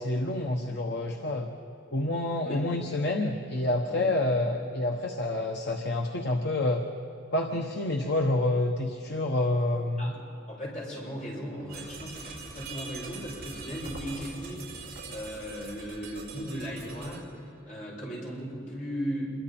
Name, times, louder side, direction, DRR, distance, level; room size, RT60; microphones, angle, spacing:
voice 1, 0.0-1.5 1.9-6.8 7.3-10.1, left 2 dB, 55° left, 2 dB, 1.2 m, -28 dB
voice 2, 10.5-19.3, equal, 40° left, -4 dB, 7.0 m, -37 dB
sound 1, 11.7-17.2, right 3 dB, 50° right, 4.9 m, -43 dB
27.5 x 23.5 x 4.4 m, 2.9 s
head